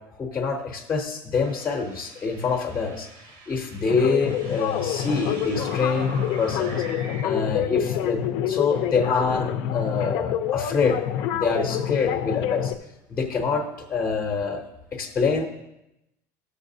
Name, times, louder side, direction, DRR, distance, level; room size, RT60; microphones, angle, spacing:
voice 1, 0.2-3.1 3.5-6.8 7.2-11.0 11.3-12.7 13.1-14.6 14.9-15.5, left 4 dB, 20° left, 2 dB, 0.7 m, -26 dB
sound 1, 1.4-7.2, right 4 dB, 80° right, 1.3 m, -43 dB
sound 2, 3.9-12.7, left 10 dB, 60° left, 0.5 m, -27 dB
13.5 x 6.6 x 2.7 m, 0.89 s
cardioid pair, 150°, 9 cm